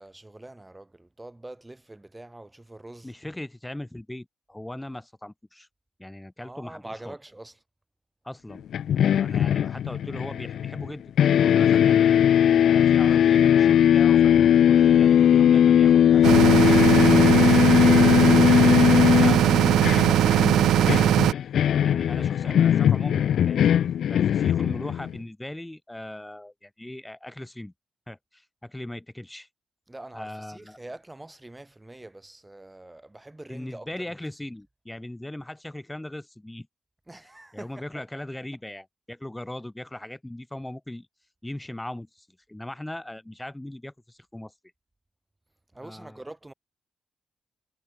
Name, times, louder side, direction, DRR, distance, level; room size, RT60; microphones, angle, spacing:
voice 1, 0.0-3.1 6.4-7.6 9.2-9.5 21.9-23.0 29.9-33.9 37.1-38.0 45.7-46.5, right 2 dB, 15° right, 6.6 m, -44 dB
voice 2, 3.0-5.7 6.0-7.1 8.2-8.6 9.2-11.0 11.3-12.2 12.6-14.3 14.7-17.1 17.6-21.2 21.8-23.6 24.1-27.7 28.1-29.5 30.1-30.8 33.5-36.7 37.5-41.1 41.4-44.5 45.8-46.2, left 1 dB, 10° left, 5.4 m, -38 dB
sound 1, 8.7-10.9 11.2-25.2, left 9 dB, 70° left, 0.3 m, -19 dB
sound 2, 16.2-21.3, right 12 dB, 75° right, 0.4 m, -19 dB
hypercardioid pair, 45°, 0 cm